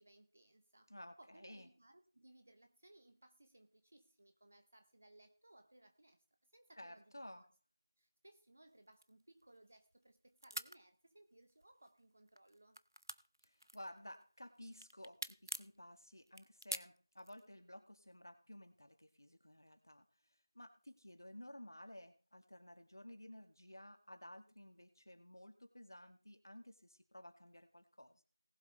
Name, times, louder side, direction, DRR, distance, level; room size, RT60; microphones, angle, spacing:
voice 1, 0.0-0.9 1.2-6.2 6.5-7.5 8.0-12.8, right 1 dB, 25° right, 0.8 m, -65 dB
voice 2, 0.9-1.7 6.8-7.4 13.4-28.2, left 1 dB, 60° left, 1.9 m, -55 dB
sound 1, 9.0-10.1 10.4-10.8 11.5-12.0 12.3-14.2 14.6-15.8 16.3-17.5, right 1 dB, 60° right, 0.7 m, -46 dB
19.0 x 7.7 x 3.3 m
figure-of-eight pair, 175°, 2 cm